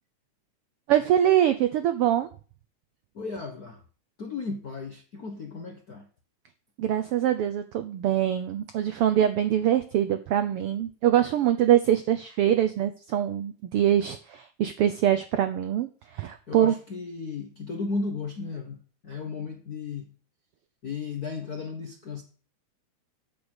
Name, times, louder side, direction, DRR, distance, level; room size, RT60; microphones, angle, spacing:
voice 1, 0.9-2.3 6.8-16.7, right 11 dB, 85° right, 1.3 m, -24 dB
voice 2, 3.1-3.8 4.2-6.1 16.5-20.1 20.8-22.2, left 4 dB, 65° left, 0.9 m, -35 dB
8.5 x 6.2 x 8.0 m
omnidirectional pair, 3.4 m